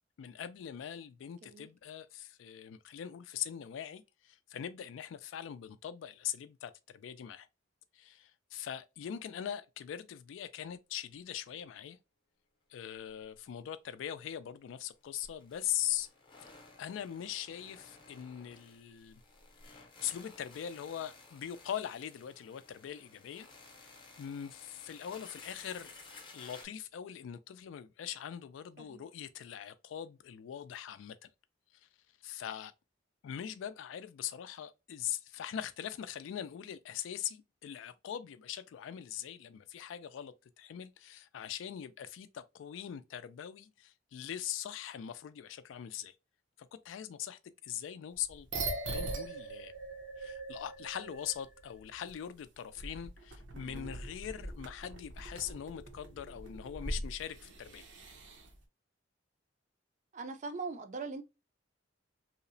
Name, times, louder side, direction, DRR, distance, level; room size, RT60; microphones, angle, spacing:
voice 1, 0.2-7.5 7.9-12.0 12.7-16.1 16.8-19.2 19.6-23.5 23.8-23.9 24.2-25.9 26.3-31.3 31.7-31.9 32.2-32.7 33.2-46.2 46.6-48.5 48.9-49.7 50.2-57.9, left 10 dB, 85° left, 0.3 m, -41 dB
sound 1, 13.1-13.2 13.4-13.5 15.0-26.7, left 3 dB, 25° left, 0.6 m, -55 dB
sound 2, 48.3-51.8 52.1-52.2 52.8-58.5, right 2 dB, 80° right, 0.7 m, -41 dB
voice 2, 53.5-53.9 60.1-61.2, right 4 dB, 40° right, 0.4 m, -41 dB
2.7 x 2.0 x 2.6 m
head